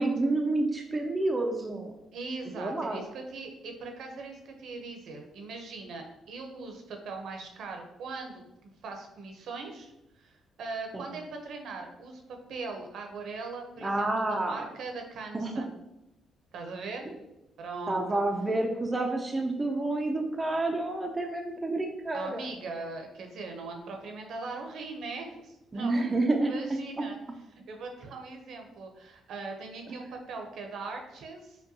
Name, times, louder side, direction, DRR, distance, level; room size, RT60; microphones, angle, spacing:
voice 1, 0.0-1.9 2.6-3.0 10.9-11.0 13.8-14.7 15.3-15.5 17.9-22.5 25.7-26.5, right 2 dB, 20° right, 2 dB, 0.4 m, -29 dB
voice 2, 2.1-9.9 10.2-12.2 12.5-15.8 16.5-17.1 17.6-18.2 22.1-27.2 27.7-31.6, right 3 dB, 70° right, 3 dB, 0.7 m, -40 dB
5.1 x 2.2 x 2.7 m, 0.89 s
cardioid pair, 115°, 0 cm